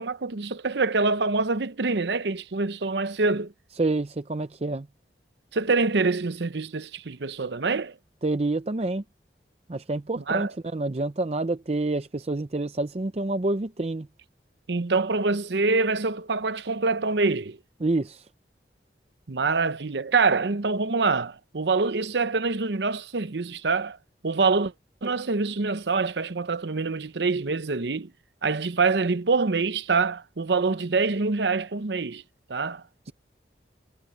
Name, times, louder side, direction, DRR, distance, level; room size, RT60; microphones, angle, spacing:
voice 1, 0.0-3.5 5.5-8.0 10.2-10.5 14.7-17.6 19.3-24.0 24.2-24.7 25.0-28.1 28.4-32.2 32.5-33.1, right 4 dB, 75° right, 0.8 m, -25 dB
voice 2, 3.8-4.9 8.2-9.0 9.7-14.1 17.8-18.2, right 2 dB, 35° right, 0.6 m, -27 dB
head